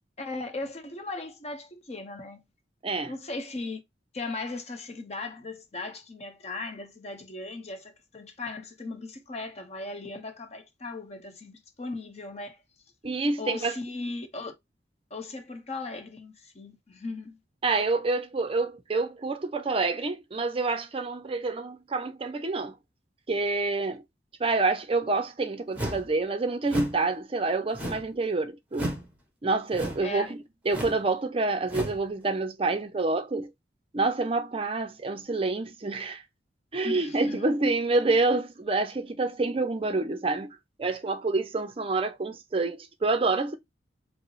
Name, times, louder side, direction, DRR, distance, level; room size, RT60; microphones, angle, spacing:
voice 1, 0.2-2.4 3.1-3.8 4.1-12.6 13.4-14.5 15.1-17.4 30.0-30.3 36.8-37.5, left 3 dB, 35° left, 0.8 m, -37 dB
voice 2, 2.8-3.1 13.0-13.8 17.6-22.8 23.3-24.0 24.4-29.0 29.4-33.5 33.9-36.2 36.7-43.6, right 3 dB, 30° right, 0.5 m, -27 dB
sound 1, 25.8-26.1 26.7-27.0 27.7-28.2 28.7-29.1 29.7-30.1 30.7-31.0 31.7-32.0, equal, 10° right, 1.1 m, -33 dB
4.8 x 2.0 x 3.1 m
head